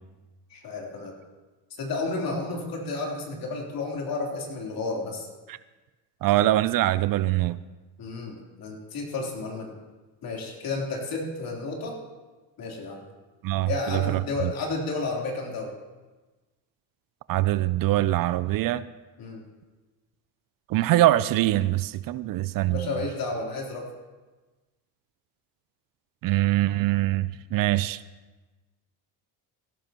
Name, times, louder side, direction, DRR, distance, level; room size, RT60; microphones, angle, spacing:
voice 1, 0.5-1.1 1.8-5.3 8.0-9.7 10.2-12.0 12.6-13.0 13.6-15.7 19.2-19.4 22.6-23.9, left 3 dB, 60° left, 3.5 m, -32 dB
voice 2, 6.2-7.6 13.4-14.5 17.3-18.8 20.7-22.9 26.2-28.0, right 15 dB, 60° right, 0.5 m, -23 dB
16.0 x 13.5 x 2.9 m
cardioid pair, 95°, 39 cm